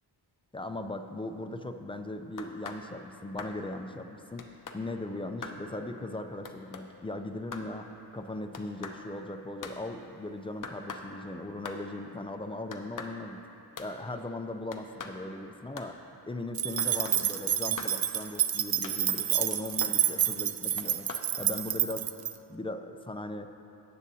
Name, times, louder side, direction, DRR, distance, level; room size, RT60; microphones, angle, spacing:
voice 1, 0.5-4.5 4.7-13.4 13.8-16.0 16.3-21.1 21.4-22.0 22.5-23.5, left 2 dB, 15° left, 6 dB, 0.3 m, -38 dB
sound 1, 2.4-2.8 3.4-3.6 4.4-4.8 5.4-5.6 6.5-6.8 7.5-7.7 8.5-9.0 9.6-9.8 10.6-11.1 11.7-11.8 12.7-13.2 13.8-13.9 14.7-15.2 15.8-15.9 16.8-17.2 17.8-18.0 18.8-19.2 19.8-20.0 20.8-21.3, left 5 dB, 50° left, 0.7 m, -41 dB
sound 2, 16.5-22.3, right 11 dB, 65° right, 0.5 m, -29 dB
17.0 x 7.3 x 2.7 m, 2.9 s
wide cardioid pair, 125°, 40 cm